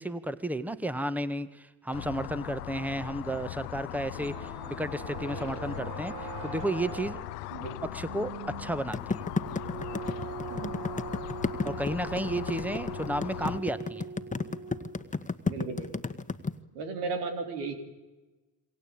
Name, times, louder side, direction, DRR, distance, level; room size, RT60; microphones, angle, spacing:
voice 1, 0.0-7.2 7.6-7.7 7.9-9.3 11.6-14.1, right 1 dB, 5° right, 14 dB, 1.7 m, -33 dB
sound 1, 1.9-13.6, left 16 dB, 90° left, 0.9 m, -40 dB
sound 2, 4.0-15.2, right 7 dB, 60° right, 1.5 m, -42 dB
voice 2, 7.5-7.9 10.5-10.8 15.4-16.0 16.7-17.7, right 4 dB, 85° right, 7 dB, 4.0 m, -35 dB
sound 3, 8.9-16.5, left 4 dB, 15° left, 1.7 m, -32 dB
27.5 x 24.5 x 8.9 m, 1.2 s
hypercardioid pair, 65°, 45 cm